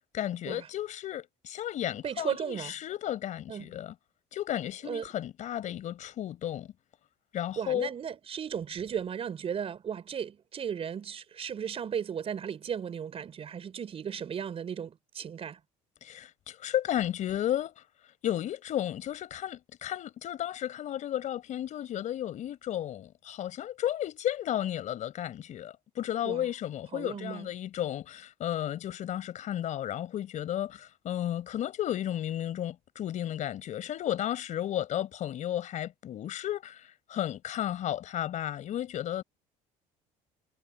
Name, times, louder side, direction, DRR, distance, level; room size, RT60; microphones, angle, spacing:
voice 1, 0.1-3.9 4.3-6.7 7.3-7.9 16.0-17.7 18.2-39.2, left 11 dB, 55° left, 4.4 m, -33 dB
voice 2, 2.0-2.7 3.5-3.7 4.9-5.0 7.5-15.6 26.2-26.5 26.9-27.5, right 7 dB, 40° right, 5.0 m, -35 dB
cardioid pair, 100°, 15 cm